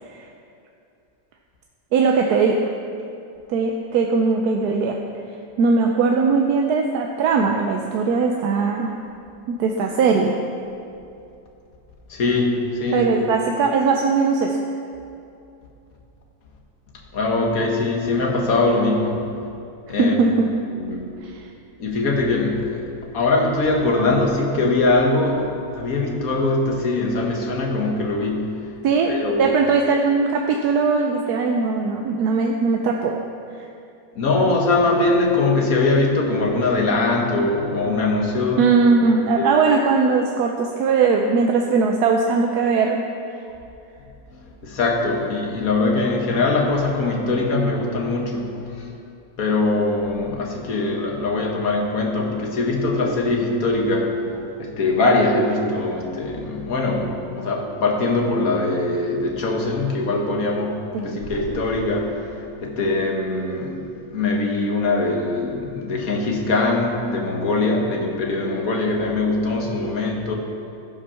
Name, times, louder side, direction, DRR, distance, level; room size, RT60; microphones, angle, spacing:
voice 1, 1.9-2.7 3.5-5.0 5.6-8.9 9.5-10.4 12.9-14.6 20.0-20.5 21.2-21.5 28.8-33.2 33.6-33.7 38.6-43.1 60.9-61.3, right 4 dB, 70° right, 2 dB, 1.2 m, -20 dB
voice 2, 12.1-13.3 17.1-19.2 19.9-20.2 20.8-21.1 21.8-22.8 23.1-28.7 29.1-29.6 34.1-38.6 39.4-39.6 44.6-48.9 49.4-62.2 62.6-70.4, left 2 dB, 55° left, 1 dB, 1.7 m, -22 dB
14.5 x 5.7 x 5.6 m, 2.7 s
omnidirectional pair, 1.8 m